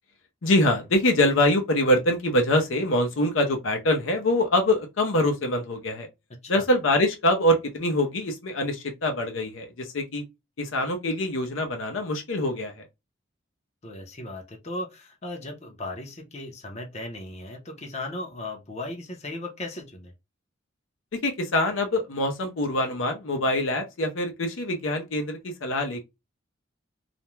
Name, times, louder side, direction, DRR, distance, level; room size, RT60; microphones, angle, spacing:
voice 1, 0.4-6.1 6.5-10.2 10.6-12.9 21.2-26.0, left 1 dB, 80° left, 0.7 m, -24 dB
voice 2, 13.8-20.1, left 2 dB, 35° left, 0.7 m, -37 dB
2.5 x 2.1 x 3.0 m
head